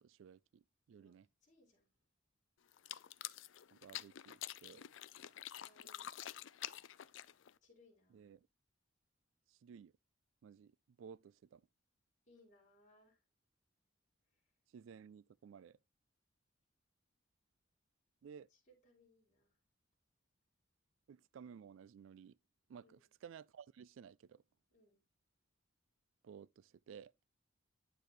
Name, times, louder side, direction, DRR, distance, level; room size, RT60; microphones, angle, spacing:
voice 1, 0.0-1.3 3.7-4.9 8.1-8.5 9.5-9.9 10.4-11.6 14.7-15.8 18.2-18.5 21.1-22.4 22.7-24.4 26.2-27.1, right 7 dB, 80° right, 0.3 m, -56 dB
voice 2, 1.0-1.9 5.5-6.5 7.6-8.3 12.2-13.2 14.3-14.4 18.5-19.6 22.8-23.0 24.7-25.0, left 1 dB, 40° left, 4.2 m, -69 dB
sound 1, 2.7-7.6, left 12 dB, 70° left, 0.5 m, -48 dB
10.0 x 6.8 x 3.1 m
head